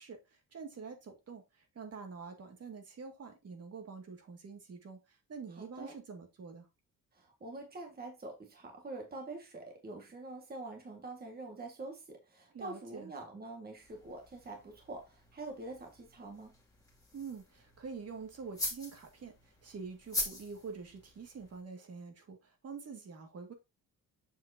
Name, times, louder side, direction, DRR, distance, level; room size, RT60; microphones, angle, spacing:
voice 1, 0.0-6.7 12.5-13.1 17.1-23.5, right 5 dB, 50° right, 2.1 m, -46 dB
voice 2, 5.6-5.9 7.1-16.6, right 2 dB, 30° right, 1.7 m, -45 dB
sound 1, 13.8-21.6, left 2 dB, 10° left, 2.4 m, -44 dB
7.4 x 5.9 x 2.8 m
cardioid pair, 105°, 33 cm